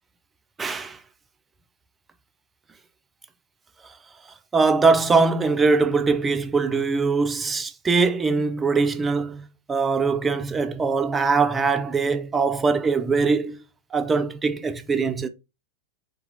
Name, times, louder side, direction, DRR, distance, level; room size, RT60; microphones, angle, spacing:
voice 1, 0.6-1.0 4.5-13.6 13.9-15.3, right 4 dB, 15° right, 0.4 m, -22 dB
3.9 x 2.9 x 3.9 m
figure-of-eight pair, 90°, 0 cm